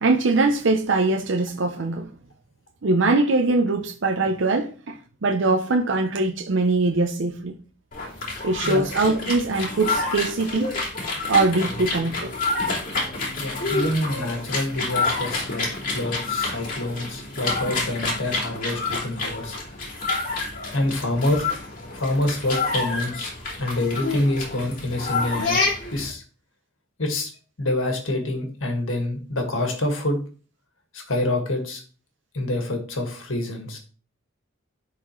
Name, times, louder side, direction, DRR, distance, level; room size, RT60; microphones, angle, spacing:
voice 1, 0.0-2.1 2.8-7.6 8.4-10.7 11.3-12.3, right 3 dB, 70° right, 0.6 m, -22 dB
sound 1, 7.9-26.1, left 3 dB, 45° left, 2.7 m, -28 dB
voice 2, 13.4-19.6 20.7-21.5 21.9-23.3 23.6-25.6 25.9-26.2 27.0-27.3 27.6-30.2 30.9-31.8 32.3-33.8, left 1 dB, 90° left, 1.8 m, -26 dB
11.0 x 4.2 x 3.1 m
head